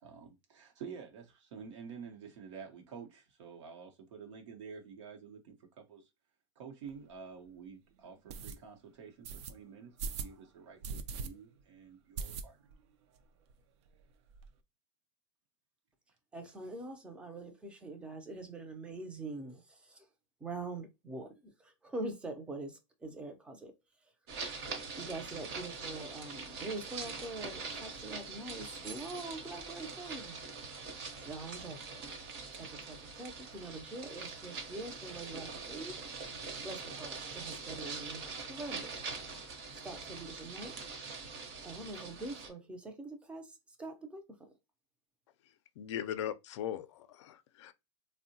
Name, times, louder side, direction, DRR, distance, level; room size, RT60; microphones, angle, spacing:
voice 1, 0.0-6.1 6.6-12.6, right 6 dB, 85° right, 0.8 m, -49 dB
sound 1, 6.9-7.0 7.5-7.6 8.3-8.6 9.2-9.5 10.0-10.3 10.8-11.3 11.6-11.7 12.2-12.8 13.2-13.3 13.5-13.6 13.9-14.5, right 5 dB, 70° right, 0.4 m, -40 dB
voice 2, 16.3-20.1 20.4-23.7 25.0-30.4 31.2-32.0 32.5-35.9 36.6-39.0 39.8-40.7 41.6-44.5, right 2 dB, 5° right, 0.4 m, -44 dB
sound 2, 24.3-42.5, right 4 dB, 50° right, 0.8 m, -43 dB
voice 3, 45.8-47.7, left 10 dB, 75° left, 0.4 m, -39 dB
3.6 x 2.1 x 2.7 m
supercardioid pair, 160°, 15 cm